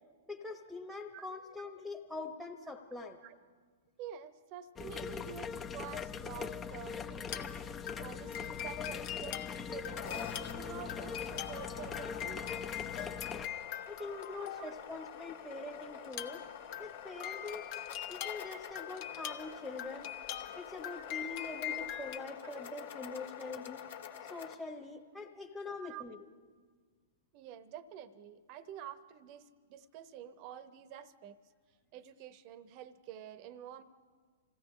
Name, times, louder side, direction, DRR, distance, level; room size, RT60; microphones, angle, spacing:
voice 1, 0.3-3.2 13.9-16.5 16.7-17.6 18.1-20.1 20.5-23.8 24.2-26.2, left 3 dB, 5° left, 5 dB, 1.1 m, -44 dB
voice 2, 4.0-7.5 8.0-12.9 14.3-15.0 17.4-17.5 25.8-26.0 27.3-31.4 31.9-33.8, right 9 dB, 45° right, 13 dB, 0.9 m, -48 dB
sound 1, 4.8-13.5, left 6 dB, 20° left, 0.7 m, -41 dB
sound 2, 5.9-6.0 7.2-7.6 7.9-15.1 16.0-22.2, left 11 dB, 45° left, 1.0 m, -43 dB
sound 3, 9.7-24.6, left 8 dB, 65° left, 1.7 m, -47 dB
27.0 x 16.0 x 3.3 m, 1.5 s
hypercardioid pair, 115°, 0 cm